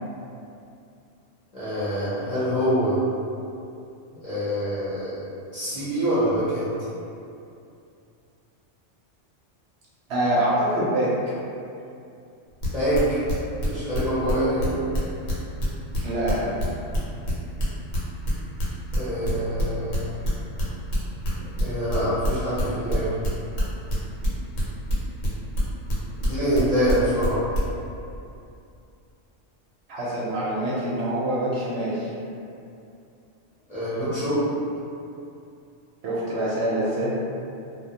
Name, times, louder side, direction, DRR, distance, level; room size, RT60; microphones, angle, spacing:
voice 1, 1.5-3.0 4.2-6.7 12.7-13.2 13.6-14.8 18.9-20.2 21.6-23.2 26.2-27.4 33.7-34.4, equal, 40° left, -14 dB, 0.7 m, -25 dB
voice 2, 10.1-11.1 16.0-16.5 29.9-32.1 36.0-37.1, right 1 dB, 65° right, -8 dB, 0.7 m, -25 dB
sound 1, 12.6-14.3 14.6-18.6 18.9-22.6 22.9-27.6, equal, 80° left, 1.0 m, -25 dB
2.1 x 2.1 x 2.7 m, 2.6 s
omnidirectional pair, 1.3 m